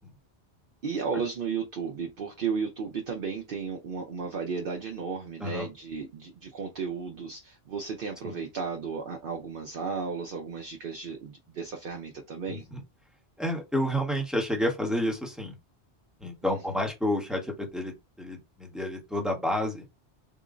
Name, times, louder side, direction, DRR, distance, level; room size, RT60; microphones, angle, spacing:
voice 1, 0.8-12.7 16.5-16.8, right 5 dB, 60° right, 0.8 m, -34 dB
voice 2, 12.5-12.8 13.4-15.6 16.2-17.9 18.2-19.8, left 1 dB, ahead, 0.8 m, -30 dB
3.7 x 2.1 x 3.7 m
omnidirectional pair, 1.2 m